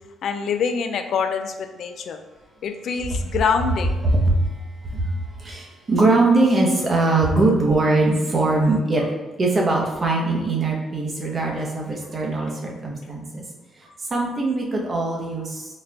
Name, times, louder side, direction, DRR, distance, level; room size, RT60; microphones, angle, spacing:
voice 1, 0.2-2.2 2.6-3.9, left 6 dB, 65° left, 7 dB, 0.3 m, -25 dB
voice 2, 4.0-4.5 4.9-5.1 5.4-9.1 9.4-13.4 14.1-15.7, right 2 dB, 35° right, -1 dB, 0.9 m, -21 dB
4.2 x 2.4 x 3.3 m, 1.2 s
cardioid pair, 90°, 0 cm